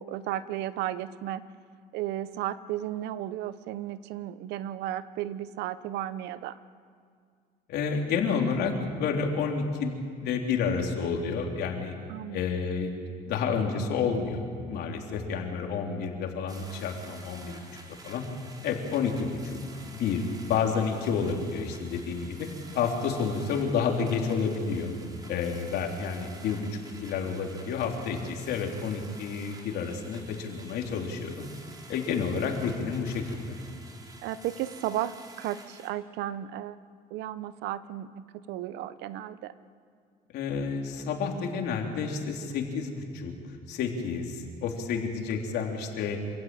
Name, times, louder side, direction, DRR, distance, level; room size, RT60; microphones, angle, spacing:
voice 1, 0.0-1.4 1.9-6.6 12.1-12.4 34.2-36.8 37.1-39.5, right 12 dB, 90° right, 15 dB, 0.9 m, -34 dB
voice 2, 7.7-11.9 12.3-12.9 13.3-17.6 18.0-18.2 18.6-19.6 19.9-22.5 22.7-24.9 25.3-26.7 27.0-31.4 31.9-33.5 40.3-43.3 43.7-46.2, left 5 dB, 75° left, 1 dB, 3.7 m, -30 dB
sound 1, 16.5-35.9, right 2 dB, 20° right, 3.9 m, -50 dB
27.0 x 16.0 x 9.1 m, 2.1 s
cardioid pair, 110°, 17 cm